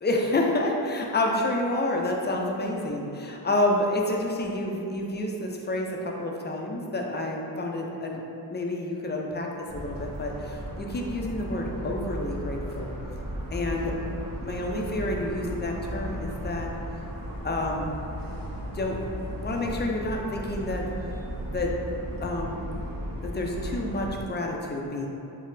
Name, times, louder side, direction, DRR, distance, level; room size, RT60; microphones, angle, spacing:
voice 1, 0.0-8.2 8.5-12.9 13.5-14.0 14.4-16.7 17.4-17.9 18.7-19.0 19.4-20.9 21.5-21.7 22.2-22.6 23.2-25.1, left 1 dB, 25° left, 0 dB, 0.4 m, -29 dB
Motor vehicle (road) / Siren, 9.7-24.2, equal, 50° right, 0.7 m, -36 dB
4.1 x 2.0 x 3.9 m, 2.8 s
cardioid pair, 80°, 43 cm